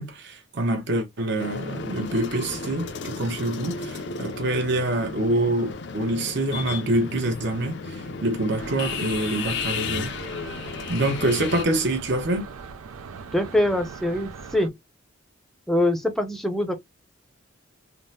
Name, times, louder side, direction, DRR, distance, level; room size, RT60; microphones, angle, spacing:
voice 1, 0.0-10.1 10.9-12.5, right 1 dB, 55° right, 0.7 m, -26 dB
sound 1, 1.4-11.6, left 5 dB, 55° left, 0.4 m, -34 dB
sound 2, 8.6-14.7, right 5 dB, 80° right, 0.5 m, -40 dB
voice 2, 13.3-14.7 15.7-16.7, left 1 dB, ahead, 0.5 m, -23 dB
3.5 x 2.0 x 2.6 m
head